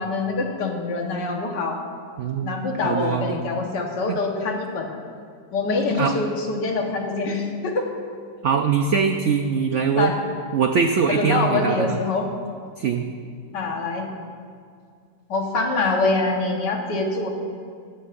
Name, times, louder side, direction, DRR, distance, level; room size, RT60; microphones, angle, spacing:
voice 1, 0.0-1.8 2.4-5.0 5.5-7.9 10.0-10.1 11.1-12.3 13.5-14.2 15.3-17.3, left 3 dB, 70° left, 2 dB, 1.9 m, -25 dB
voice 2, 2.2-3.4 4.1-4.2 6.0-6.1 8.4-10.1 10.5-12.0 12.8-13.1, right 6 dB, 85° right, 6 dB, 0.6 m, -22 dB
15.0 x 15.0 x 2.6 m, 2.2 s
omnidirectional pair, 1.9 m